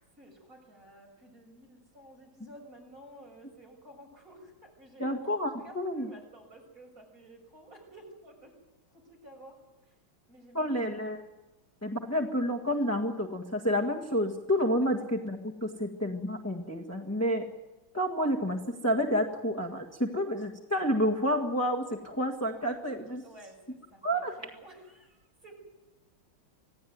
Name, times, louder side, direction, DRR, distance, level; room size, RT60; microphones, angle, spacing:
voice 1, 0.2-5.1 5.5-8.5 8.9-9.9 10.3-10.7 23.2-25.6, right 1 dB, 45° right, 1 dB, 7.4 m, -53 dB
voice 2, 5.0-6.1 10.5-11.2 11.8-17.5 17.9-23.2 24.0-24.4, equal, 10° left, 0 dB, 1.6 m, -29 dB
26.0 x 17.5 x 9.5 m, 1.1 s
omnidirectional pair, 2.2 m